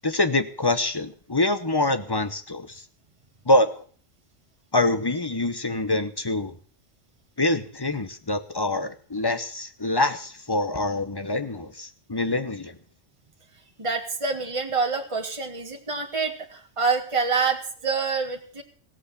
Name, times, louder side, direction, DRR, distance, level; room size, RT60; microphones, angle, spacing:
voice 1, 0.0-2.8 3.5-3.8 4.7-6.5 7.4-12.8, left 2 dB, 20° left, 10 dB, 0.9 m, -25 dB
voice 2, 13.8-18.6, right 4 dB, 25° right, 2 dB, 1.8 m, -26 dB
16.5 x 8.2 x 8.3 m, 0.44 s
omnidirectional pair, 1.3 m